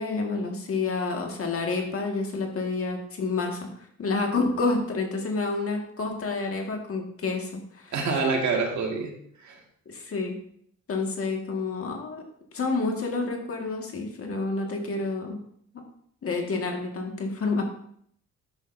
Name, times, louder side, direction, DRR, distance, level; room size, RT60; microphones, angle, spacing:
voice 1, 0.0-3.7 4.0-7.9 9.9-10.4 10.9-12.2 12.5-15.4 16.2-17.6, left 3 dB, 50° left, 2 dB, 1.8 m, -29 dB
voice 2, 7.9-9.1 9.4-9.6, right 4 dB, 70° right, 1 dB, 1.9 m, -26 dB
10.5 x 6.3 x 2.7 m, 0.67 s
cardioid pair, 90°, 30 cm